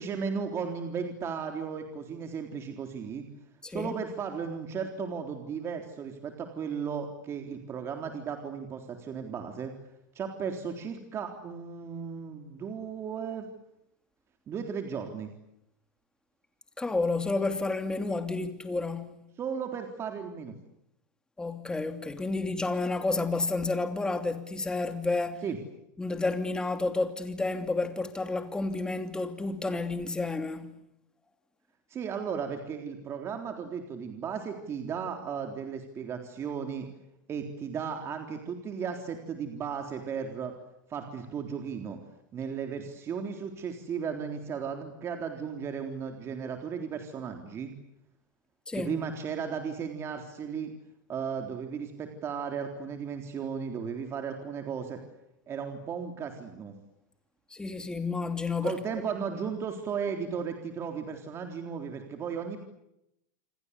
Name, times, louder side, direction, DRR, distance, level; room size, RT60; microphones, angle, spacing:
voice 1, 0.0-3.2 3.7-9.7 10.1-13.5 14.5-15.3 19.4-20.6 25.4-25.6 31.9-36.9 37.3-40.5 40.9-42.0 42.3-47.7 48.7-50.7 51.1-55.0 55.5-56.8 58.6-62.7, right 6 dB, 25° right, 3.8 m, -35 dB
voice 2, 16.8-19.2 21.4-25.4 26.0-30.7 48.7-48.9 57.5-58.8, left 3 dB, 10° left, 3.0 m, -30 dB
28.0 x 25.0 x 8.4 m
supercardioid pair, 140°, 10 cm